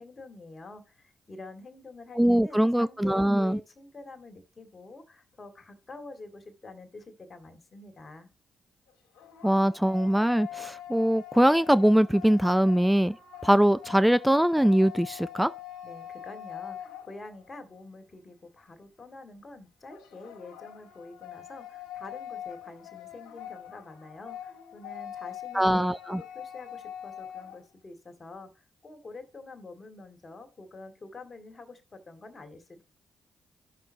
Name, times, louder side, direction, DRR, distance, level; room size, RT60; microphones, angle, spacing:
voice 1, 0.0-8.3 15.8-25.9 26.2-32.8, left 3 dB, 40° left, 2.2 m, -47 dB
voice 2, 2.1-3.6 9.4-13.2 13.4-15.5 25.5-26.2, equal, 5° right, 0.4 m, -22 dB
sound 1, 8.9-17.6 19.9-27.6, left 11 dB, 80° left, 1.8 m, -43 dB
14.0 x 6.0 x 2.9 m
hypercardioid pair, 45°, 0 cm